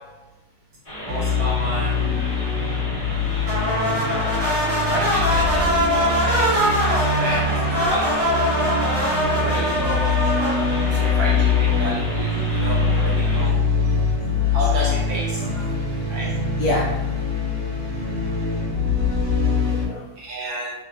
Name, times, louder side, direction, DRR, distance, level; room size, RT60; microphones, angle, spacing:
sound 1, 0.8-13.5, left 1 dB, 25° left, 0.9 m, -34 dB
voice 1, 1.0-2.0 4.9-6.6 6.9-8.3 9.3-10.1 10.8-13.6 14.5-15.5 16.1-16.3 20.2-20.7, right 1 dB, 70° right, -5 dB, 0.9 m, -31 dB
sound 2, 1.1-19.9, left 4 dB, 85° right, 1.4 m, -23 dB
sound 3, 3.4-11.9, left 1 dB, 45° right, 1.1 m, -23 dB
voice 2, 9.4-9.8 12.8-12.9 13.4-13.5 13.9-14.0 15.4-15.8 16.6-16.9 19.4-20.1, left 1 dB, 70° left, -6 dB, 1.0 m, -29 dB
3.2 x 2.6 x 2.3 m, 1.0 s
omnidirectional pair, 2.0 m